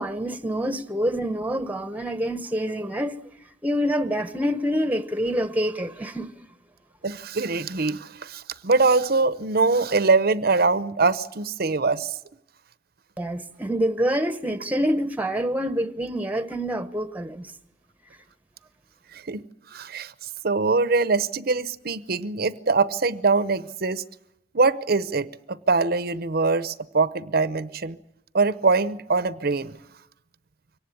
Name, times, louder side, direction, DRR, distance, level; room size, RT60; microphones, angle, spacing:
voice 1, 0.0-3.2 3.6-6.3 13.2-17.5, equal, 10° right, 1.0 m, -26 dB
voice 2, 7.0-12.1 19.1-19.4 19.7-20.1 20.4-24.0 24.5-25.3 25.7-28.0 28.3-29.7, right 3 dB, 55° right, 0.8 m, -23 dB
24.0 x 18.5 x 8.4 m
head